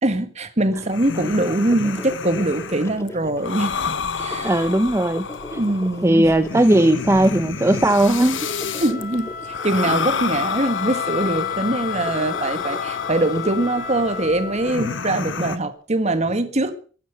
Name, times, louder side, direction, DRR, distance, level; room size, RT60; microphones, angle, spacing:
voice 1, 0.0-4.7 5.5-6.3 8.8-9.3 9.6-16.8, right 1 dB, 35° right, 10 dB, 1.6 m, -23 dB
sound 1, 0.7-15.6, left 5 dB, 70° left, 0.9 m, -30 dB
sound 2, 1.1-14.8, left 1 dB, 15° left, 1.1 m, -39 dB
voice 2, 4.4-5.6 6.0-8.5, right 1 dB, 15° right, 9 dB, 0.6 m, -18 dB
Wind instrument woodwind instrument, 7.4-15.4, left 8 dB, 45° left, 2.7 m, -33 dB
15.0 x 11.5 x 6.9 m, 0.42 s
head